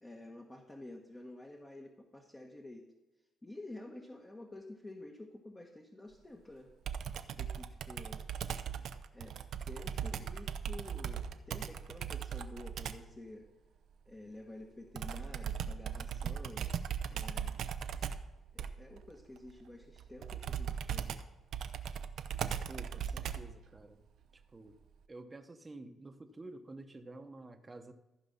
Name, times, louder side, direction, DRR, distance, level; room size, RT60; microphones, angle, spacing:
voice 1, 0.0-2.9 3.4-6.7 7.4-8.2 9.1-9.4 9.6-13.4 14.1-16.7 17.1-17.6 18.5-21.1, left 2 dB, 20° left, 0 dB, 1.3 m, -50 dB
Computer keyboard, 6.9-13.1 14.9-23.6, right 8 dB, 70° right, 0.6 m, -39 dB
voice 2, 22.7-24.0 24.3-24.8 25.1-27.9, right 2 dB, 25° right, 7 dB, 1.0 m, -50 dB
14.5 x 4.9 x 5.7 m, 1.1 s
cardioid pair, 90°, 0 cm